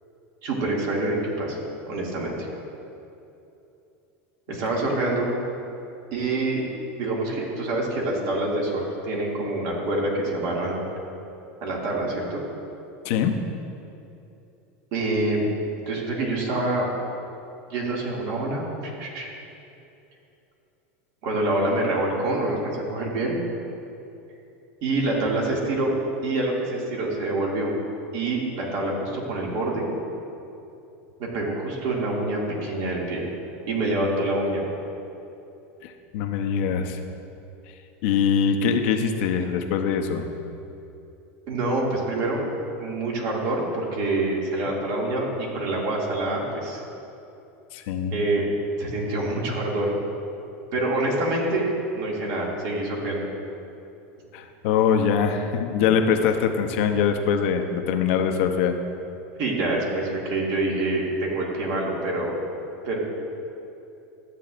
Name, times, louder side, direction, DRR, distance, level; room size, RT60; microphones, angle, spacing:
voice 1, 0.4-1.6 1.9-2.5 4.5-5.3 6.1-6.6 7.0-10.8 11.6-12.4 14.9-15.4 15.9-16.9 17.7-19.3 21.2-23.4 24.8-25.9 26.2-27.7 28.1-29.9 31.2-33.2 33.7-34.6 41.5-42.4 42.8-46.8 48.1-48.4 48.8-49.9 50.7-51.7 52.0-53.3 55.8-55.9 59.4-62.4 62.8-63.0, right 2 dB, 60° right, -3 dB, 2.3 m, -26 dB
voice 2, 13.0-13.4 35.8-37.0 38.0-40.3 47.7-48.1 54.3-58.8, left 7 dB, 65° left, 6 dB, 0.7 m, -23 dB
13.5 x 8.4 x 2.5 m, 2.8 s
supercardioid pair, 135°, 7 cm